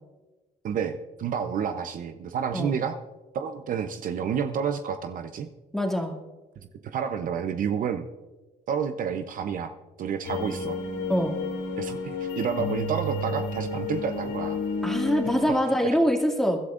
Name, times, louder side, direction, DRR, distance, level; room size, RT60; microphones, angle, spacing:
voice 1, 0.6-3.0 3.3-5.5 6.8-8.1 8.7-9.7 10.0-10.8 11.8-14.6, right 7 dB, 55° right, 8 dB, 0.8 m, -29 dB
voice 2, 5.7-6.2 11.1-11.3 14.8-16.6, equal, ahead, 1 dB, 2.3 m, -24 dB
sound 1, 10.2-15.5, left 3 dB, 85° left, 2.5 m, -31 dB
23.0 x 12.0 x 2.6 m, 1.1 s
cardioid pair, 110°, 17 cm